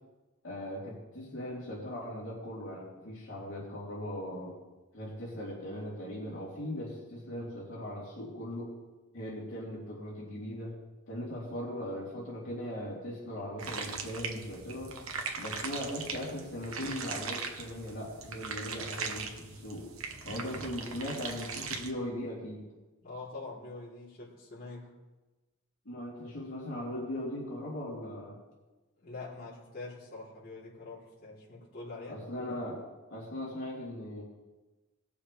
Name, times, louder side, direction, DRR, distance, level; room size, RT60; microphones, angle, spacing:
voice 1, 0.4-4.6 4.9-8.7 9.1-10.7 11.1-14.9 15.4-19.9 20.2-22.6 25.8-28.4 32.1-32.8 33.1-34.2, left 1 dB, 60° left, -6 dB, 3.2 m, -39 dB
sound 1, 13.6-21.9, right 5 dB, 80° right, 1.2 m, -39 dB
voice 2, 23.0-24.9 29.0-32.2, left 3 dB, 45° left, -9 dB, 3.3 m, -44 dB
18.5 x 7.0 x 3.4 m, 1.1 s
head